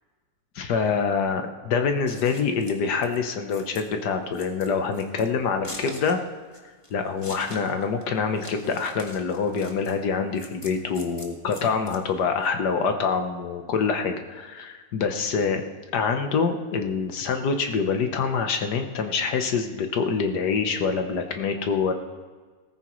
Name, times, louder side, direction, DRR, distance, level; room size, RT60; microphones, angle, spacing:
voice 1, 0.5-6.2 6.9-15.6 15.9-21.9, left 5 dB, 65° left, 6 dB, 1.6 m, -25 dB
Scissors, 1.9-12.5, left 1 dB, 20° left, 1.3 m, -44 dB
17.5 x 14.5 x 3.1 m, 1.5 s
omnidirectional pair, 2.0 m